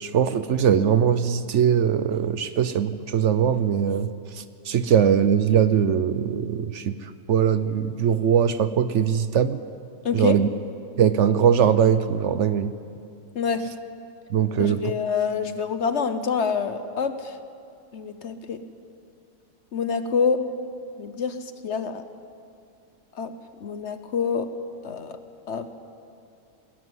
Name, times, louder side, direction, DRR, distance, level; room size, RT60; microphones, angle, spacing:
voice 1, 0.0-4.1 4.7-6.9 7.3-9.6 10.1-10.5 11.0-12.7 14.3-14.9, right 8 dB, 65° right, 12 dB, 1.0 m, -21 dB
voice 2, 10.0-10.4 13.3-13.6 14.6-17.3 17.9-18.6 19.7-20.4 21.0-21.3 21.6-22.0 23.2-23.3 23.6-24.5 24.8-25.2 25.5-25.7, left 6 dB, 55° left, 10 dB, 1.1 m, -26 dB
20.0 x 13.5 x 9.6 m, 2.5 s
omnidirectional pair, 1.5 m